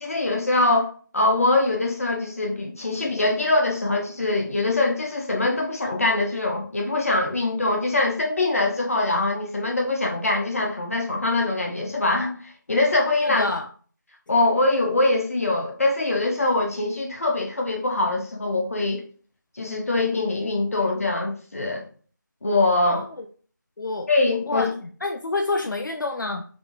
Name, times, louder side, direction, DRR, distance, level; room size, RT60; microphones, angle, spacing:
voice 1, 0.0-13.5 14.3-19.0 19.6-21.8 22.4-23.0 24.1-24.7, left 2 dB, 45° left, 1 dB, 0.7 m, -23 dB
voice 2, 13.2-13.7 22.9-23.3 23.8-24.1 24.5-26.4, left 3 dB, 70° left, 4 dB, 0.4 m, -28 dB
3.6 x 2.3 x 2.3 m, 0.42 s
figure-of-eight pair, 165°, 11 cm